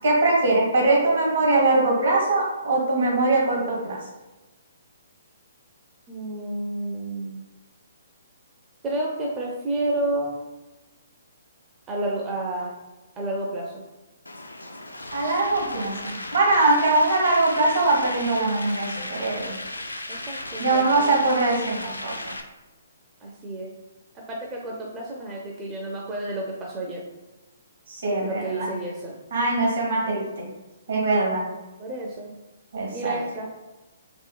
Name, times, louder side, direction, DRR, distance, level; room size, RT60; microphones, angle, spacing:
voice 1, 0.0-4.0 15.1-19.5 20.6-22.1 27.9-28.7 29.3-30.5 30.9-31.5 32.7-33.2, right 2 dB, 65° right, -3 dB, 1.5 m, -22 dB
voice 2, 6.1-7.5 8.8-10.4 11.9-12.7 13.2-13.8 20.1-21.2 23.2-23.7 24.3-27.0 28.2-29.2 31.8-32.3 32.9-33.5, right 1 dB, 20° right, -3 dB, 0.4 m, -30 dB
sound 1, 14.3-22.4, left 1 dB, 90° left, 0.3 m, -35 dB
3.6 x 2.7 x 2.3 m, 1.1 s
figure-of-eight pair, 130°, 0 cm